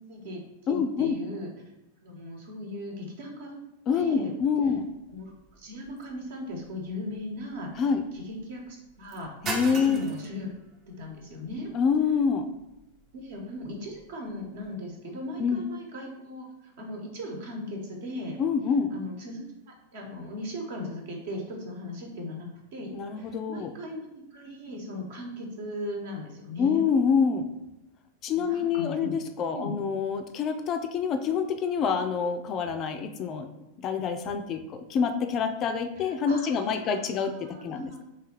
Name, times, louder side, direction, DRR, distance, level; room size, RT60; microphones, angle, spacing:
voice 1, 0.1-1.5 2.0-3.6 3.9-4.3 5.1-10.5 10.9-11.7 13.1-18.4 18.9-19.4 19.9-22.9 23.1-26.8 28.3-29.2 29.5-29.7 36.0-38.0, left 1 dB, 55° right, 0 dB, 1.1 m, -38 dB
voice 2, 0.7-1.2 3.9-4.9 7.8-8.0 9.4-10.0 11.7-12.5 15.4-15.6 18.4-18.9 22.9-23.7 26.6-27.5 28.2-33.5 33.8-38.0, left 6 dB, 35° left, 7 dB, 0.4 m, -26 dB
sound 1, 4.7-14.8, right 2 dB, 30° right, 0.7 m, -43 dB
3.3 x 3.2 x 4.5 m, 0.93 s
figure-of-eight pair, 90°, 0 cm